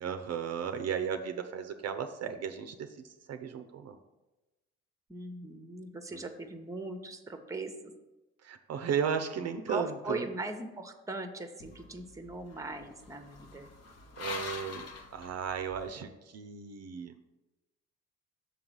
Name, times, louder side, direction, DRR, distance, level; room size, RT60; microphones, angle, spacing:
voice 1, 0.0-4.0 6.1-6.2 8.4-10.2 14.2-17.2, right 7 dB, 55° right, 8 dB, 0.6 m, -35 dB
voice 2, 5.1-7.9 9.7-13.7, right 2 dB, 10° right, 7 dB, 0.9 m, -39 dB
sound 1, 11.6-15.9, left 4 dB, 55° left, 1.0 m, -44 dB
6.7 x 3.8 x 6.2 m, 1.1 s
supercardioid pair, 70°, 30 cm